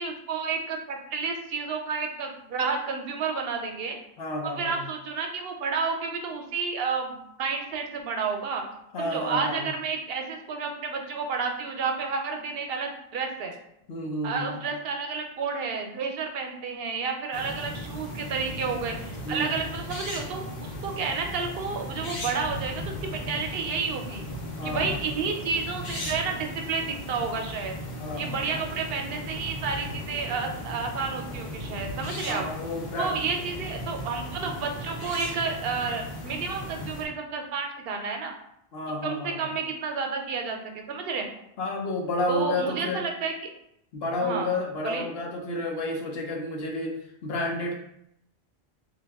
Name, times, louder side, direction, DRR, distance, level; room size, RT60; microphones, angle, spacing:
voice 1, 0.0-4.0 4.4-8.6 9.0-13.5 14.2-24.2 24.6-27.8 28.2-32.4 33.0-38.3 39.0-41.3 42.3-43.3 44.2-44.5 44.8-45.1, right 5 dB, 75° right, 4 dB, 0.8 m, -31 dB
voice 2, 4.2-4.8 8.9-9.7 13.9-14.6 19.2-19.6 24.6-25.0 28.0-28.7 32.2-33.1 38.7-39.6 41.6-43.1 43.9-47.0 47.2-47.7, left 1 dB, 75° left, 0 dB, 1.0 m, -31 dB
sound 1, 17.3-37.0, left 1 dB, 50° left, 0.8 m, -37 dB
3.4 x 2.3 x 3.4 m, 0.77 s
omnidirectional pair, 1.0 m